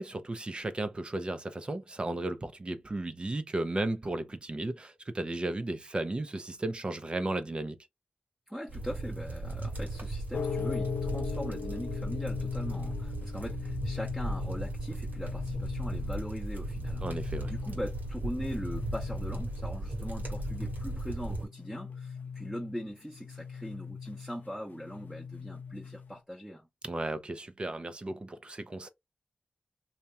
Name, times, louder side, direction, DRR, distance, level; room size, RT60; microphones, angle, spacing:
voice 1, 0.0-7.8 17.0-17.5 26.8-28.9, right 2 dB, 35° right, 0.7 m, -34 dB
voice 2, 8.5-17.0 17.5-26.7, equal, 5° right, 1.0 m, -41 dB
sound 1, 8.7-21.5, right 2 dB, 80° right, 1.6 m, -37 dB
sound 2, 10.3-26.2, left 6 dB, 80° left, 0.5 m, -39 dB
2.9 x 2.8 x 3.4 m
cardioid pair, 70°, 3 cm